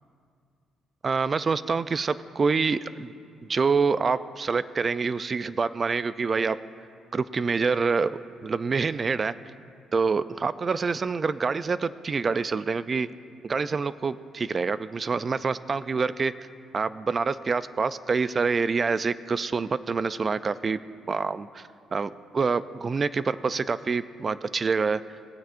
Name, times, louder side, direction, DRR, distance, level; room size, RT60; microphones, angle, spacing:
voice 1, 1.0-3.1 3.5-6.6 7.1-9.3 9.9-13.1 13.4-16.3 16.7-20.8 21.1-21.6 21.9-25.0, right 4 dB, 35° right, 15 dB, 0.3 m, -26 dB
19.0 x 8.9 x 2.5 m, 2.4 s
cardioid pair, 90°, 0 cm